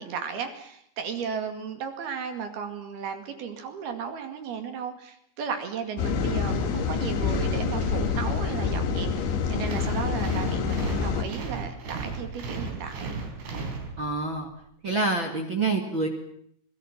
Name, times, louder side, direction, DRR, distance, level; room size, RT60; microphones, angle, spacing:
voice 1, 0.0-13.2, right 6 dB, 65° right, 7 dB, 3.9 m, -35 dB
sound 1, 6.0-11.2, left 5 dB, 85° left, 4.5 m, -27 dB
sound 2, 9.6-14.4, right 4 dB, 80° right, 6.5 m, -35 dB
voice 2, 14.0-14.5 14.8-16.1, right 3 dB, 35° right, 3 dB, 2.2 m, -26 dB
26.0 x 21.5 x 7.4 m, 0.68 s
omnidirectional pair, 5.1 m